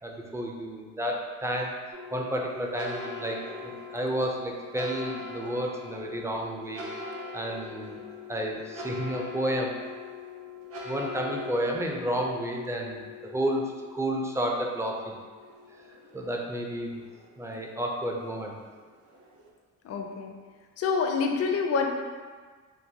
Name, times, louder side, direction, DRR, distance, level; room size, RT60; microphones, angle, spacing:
voice 1, 0.0-1.7 2.1-6.9 7.3-8.0 8.3-9.8 10.9-13.6 13.9-15.1 16.1-17.0 17.4-18.5, right 1 dB, 10° right, 0 dB, 0.4 m, -31 dB
sound 1, 1.9-19.5, left 3 dB, 50° right, 0.6 m, -42 dB
voice 2, 19.8-20.3 20.8-22.0, left 5 dB, 55° left, 3 dB, 0.5 m, -27 dB
3.8 x 2.1 x 2.7 m, 1.5 s
cardioid pair, 90°, 30 cm